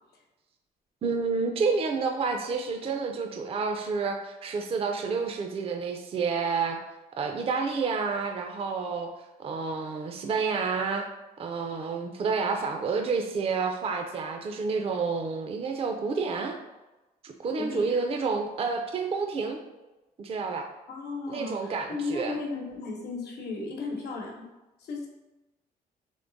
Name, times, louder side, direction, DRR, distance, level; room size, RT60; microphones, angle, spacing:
voice 1, 1.0-6.8 7.2-9.1 9.4-11.1 11.4-16.6 17.2-19.6 20.2-20.7 21.3-22.4, right 4 dB, 35° right, 4 dB, 0.4 m, -29 dB
voice 2, 17.6-18.0 20.9-24.4 24.8-25.1, left 3 dB, 85° left, 0 dB, 1.0 m, -35 dB
3.6 x 3.1 x 3.9 m, 1.1 s
cardioid pair, 120°, 16 cm